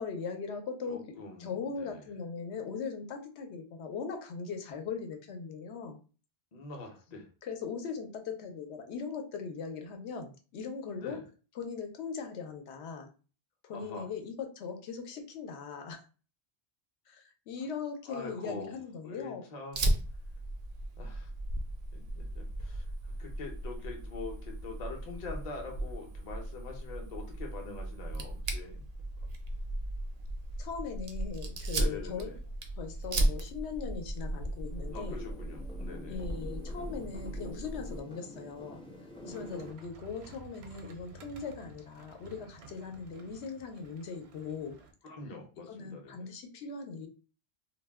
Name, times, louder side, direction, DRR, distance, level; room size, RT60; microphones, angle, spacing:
voice 1, 0.0-1.0 1.4-6.0 7.4-11.2 11.6-13.1 13.6-16.0 17.1-19.4 30.6-32.4 32.8-35.2 36.1-38.8 39.2-44.7 45.7-47.1, left 5 dB, 80° left, 5 dB, 0.9 m, -39 dB
voice 2, 0.9-2.1 6.5-7.3 11.0-11.2 13.7-14.1 18.1-19.9 21.0-21.3 21.9-28.8 31.7-32.4 34.9-36.2 45.0-46.3, left 3 dB, 45° left, 2 dB, 0.6 m, -44 dB
Fire, 19.7-38.0, right 1 dB, 55° right, 0.4 m, -36 dB
sound 1, 34.7-39.7, equal, 10° left, 0.4 m, -48 dB
sound 2, 39.3-44.9, right 4 dB, 75° right, 0.8 m, -53 dB
2.3 x 2.1 x 3.3 m, 0.36 s
omnidirectional pair, 1.1 m